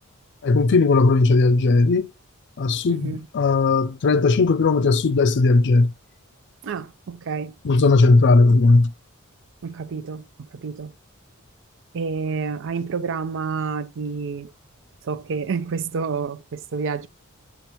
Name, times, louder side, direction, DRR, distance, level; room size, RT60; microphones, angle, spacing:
voice 1, 0.4-2.1 2.6-5.9 7.6-8.9, left 3 dB, 55° left, 0.5 m, -17 dB
voice 2, 2.9-3.3 6.6-7.5 9.6-10.9 11.9-14.5 15.0-17.1, right 5 dB, 60° right, 0.5 m, -29 dB
7.0 x 6.8 x 2.9 m
head